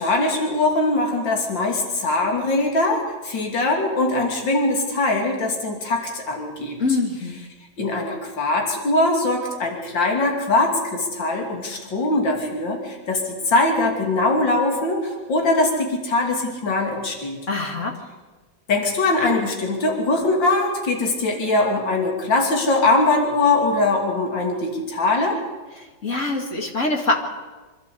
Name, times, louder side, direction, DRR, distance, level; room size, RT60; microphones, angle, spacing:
voice 1, 0.0-6.8 7.8-17.4 18.7-25.4, left 2 dB, 65° left, 1 dB, 3.5 m, -21 dB
voice 2, 6.8-7.4 17.5-18.0 25.8-27.2, left 3 dB, 40° left, 2 dB, 2.5 m, -24 dB
26.5 x 12.0 x 8.4 m, 1.3 s
omnidirectional pair, 2.2 m